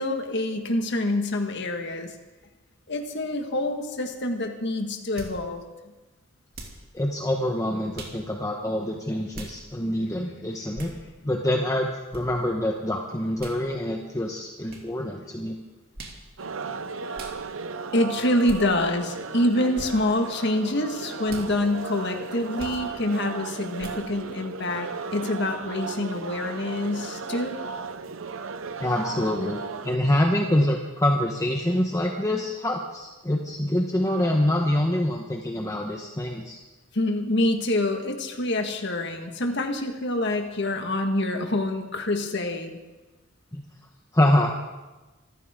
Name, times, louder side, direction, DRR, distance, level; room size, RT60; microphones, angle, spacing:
voice 1, 0.0-2.1 2.9-5.6 10.6-10.9 17.9-27.6 36.9-42.8, left 1 dB, 60° left, 4 dB, 1.8 m, -26 dB
sound 1, 5.2-5.4 6.5-6.8 7.9-8.2 9.3-9.6 10.7-11.0 12.1-12.2 13.4-13.6 14.7-14.8 15.9-16.2 17.1-17.4 18.4-18.6 19.7-19.9 21.3-21.5 22.6-22.8 23.8-24.0, right 2 dB, 50° right, 2.6 m, -40 dB
voice 2, 6.9-10.9 11.2-15.5 28.8-36.6 43.5-43.6 44.1-44.5, left 1 dB, 15° left, 1 dB, 1.1 m, -25 dB
sound 2, 16.4-30.0, right 4 dB, 80° right, 0.8 m, -35 dB
26.0 x 14.0 x 3.8 m, 1.2 s
head